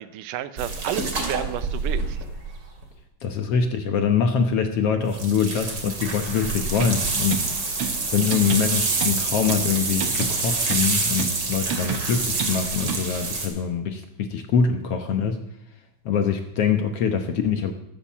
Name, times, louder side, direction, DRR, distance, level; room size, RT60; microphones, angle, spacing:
voice 1, 0.0-2.2, right 11 dB, 85° right, 13 dB, 2.4 m, -31 dB
sound 1, 0.6-2.8 5.1-13.5, right 3 dB, 35° right, 2.9 m, -27 dB
voice 2, 3.2-7.5 7.8-15.4 16.0-17.7, left 6 dB, 65° left, 6 dB, 1.7 m, -24 dB
sound 2, 6.7-13.3, right 6 dB, 55° right, 1.8 m, -33 dB
13.5 x 12.5 x 7.3 m, 0.82 s
omnidirectional pair, 3.6 m